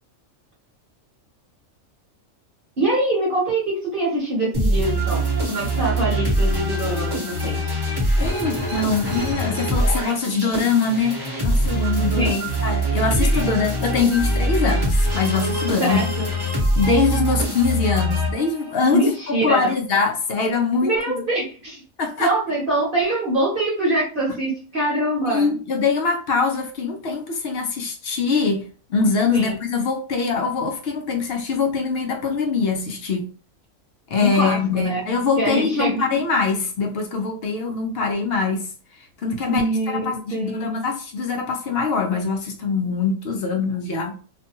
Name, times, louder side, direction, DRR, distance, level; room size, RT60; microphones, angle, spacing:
voice 1, 2.8-7.8 12.1-12.5 13.2-13.4 15.9-16.3 18.9-19.7 20.8-21.8 22.2-25.5 29.3-29.5 34.2-35.0 35.4-36.2 39.5-40.8, right 1 dB, 45° right, 1.0 m, -24 dB
sound 1, 4.5-18.8, right 1 dB, 20° right, 0.8 m, -23 dB
voice 2, 8.2-11.2 11.4-16.0 16.8-21.0 22.0-22.3 25.3-33.2 34.1-38.7 39.2-44.1, left 4 dB, 65° left, 0.7 m, -23 dB
2.5 x 2.1 x 2.8 m
omnidirectional pair, 1.4 m